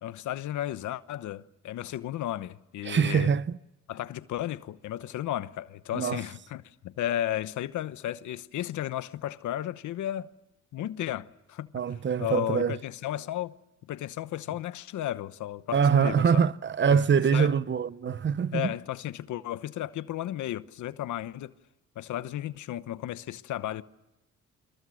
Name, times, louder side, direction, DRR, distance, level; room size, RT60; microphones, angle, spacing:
voice 1, 0.0-3.3 3.9-10.3 10.7-11.7 12.2-13.5 13.9-16.3 17.3-17.5 18.1-18.2 18.5-21.5 22.0-23.8, left 12 dB, 75° left, 1.0 m, -34 dB
voice 2, 2.8-3.6 5.9-6.2 11.7-12.8 15.7-18.7, right 7 dB, 40° right, 0.8 m, -24 dB
29.5 x 26.0 x 6.3 m
cardioid pair, 90°, 30 cm